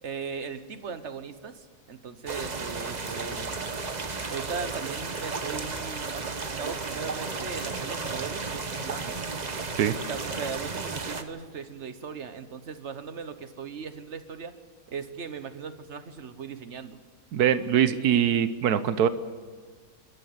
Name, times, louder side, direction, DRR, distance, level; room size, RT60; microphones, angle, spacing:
voice 1, 0.0-3.7 4.3-9.2 10.1-14.5 14.9-17.0, right 6 dB, 50° right, 10 dB, 1.4 m, -38 dB
sound 1, 2.3-11.2, right 4 dB, 30° right, 1.1 m, -33 dB
voice 2, 17.3-19.1, right 9 dB, 85° right, 12 dB, 1.4 m, -22 dB
27.5 x 12.5 x 8.0 m, 1.5 s
omnidirectional pair, 1.6 m